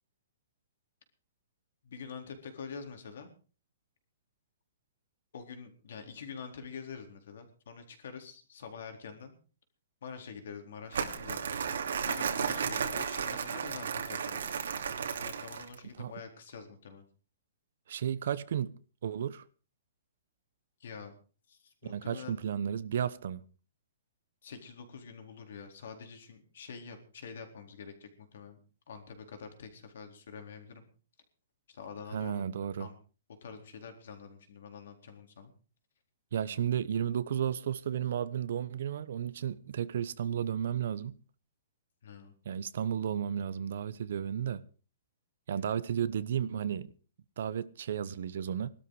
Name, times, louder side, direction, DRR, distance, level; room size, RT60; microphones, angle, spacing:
voice 1, 1.8-3.3 5.3-9.3 10.0-11.6 12.1-14.6 15.2-17.0 20.8-21.1 21.5-22.3 24.4-28.6 28.9-30.8 31.7-32.4 32.8-32.9 33.4-35.5 42.0-42.3 45.5-45.7, left 6 dB, 60° left, 4.1 m, -46 dB
Crumpling crinkling, 10.9-15.8, right 7 dB, 80° right, 2.7 m, -34 dB
voice 2, 17.9-19.4 21.8-23.4 32.1-32.9 36.3-41.2 42.4-44.6 45.5-46.9 47.4-48.7, right 9 dB, 55° right, 1.0 m, -33 dB
19.5 x 12.5 x 4.9 m
hypercardioid pair, 175°, 0 cm